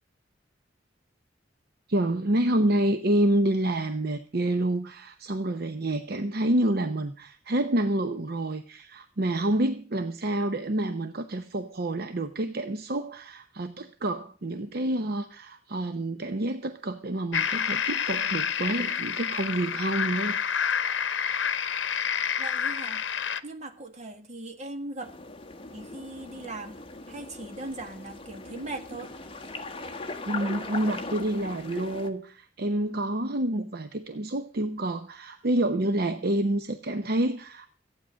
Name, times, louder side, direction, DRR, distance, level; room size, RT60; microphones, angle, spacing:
voice 1, 1.9-20.4 30.3-37.7, right 1 dB, 55° right, 8 dB, 0.8 m, -28 dB
sound 1, 17.3-23.4, left 7 dB, 90° left, 0.8 m, -28 dB
voice 2, 22.4-23.1 23.4-25.1 25.7-26.8 27.1-29.1, right 2 dB, 40° right, 5 dB, 1.7 m, -39 dB
sound 2, 25.0-32.1, left 3 dB, 30° left, 1.4 m, -39 dB
15.0 x 9.1 x 6.3 m, 0.41 s
head